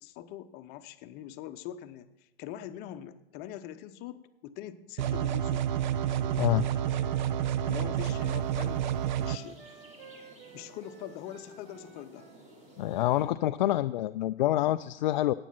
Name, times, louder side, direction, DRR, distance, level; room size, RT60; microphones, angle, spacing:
voice 1, 0.0-5.7 7.6-9.8 10.5-12.3, left 11 dB, 30° left, 10 dB, 0.8 m, -43 dB
sound 1, 5.0-9.4, right 10 dB, 50° right, 0.6 m, -29 dB
Wind instrument woodwind instrument, 5.6-8.7 9.2-12.4, right 4 dB, 70° right, 1.4 m, -52 dB
sound 2, 7.9-13.2, right 1 dB, 25° right, 3.2 m, -55 dB
voice 2, 12.8-15.3, left 14 dB, 50° left, 10 dB, 0.4 m, -27 dB
14.5 x 9.1 x 5.8 m, 0.98 s
figure-of-eight pair, 100°, 30 cm